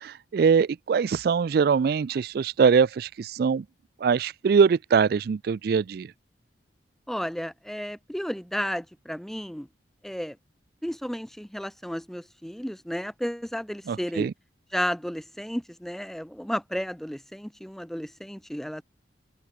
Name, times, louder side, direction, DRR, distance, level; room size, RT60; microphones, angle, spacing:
voice 1, 0.0-3.6 4.0-6.1 13.9-14.3, right 6 dB, 55° right, 0.3 m, -22 dB
voice 2, 7.1-9.7 10.0-10.4 10.8-14.3 14.7-18.8, equal, ahead, 0.7 m, -33 dB
open air
head